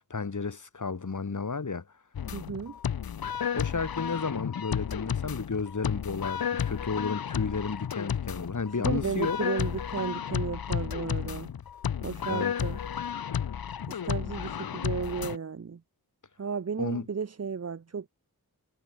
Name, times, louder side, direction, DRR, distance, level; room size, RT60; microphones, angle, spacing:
voice 1, 0.0-1.8 3.5-9.4 12.3-12.6 16.8-17.1, left 4 dB, 50° left, 2.4 m, -32 dB
sound 1, 2.1-15.4, left 8 dB, 65° left, 0.8 m, -32 dB
voice 2, 2.3-2.8 8.8-11.5 12.0-12.8 13.9-15.8 16.4-18.1, right 6 dB, 40° right, 0.8 m, -34 dB
wide cardioid pair, 85°, 38 cm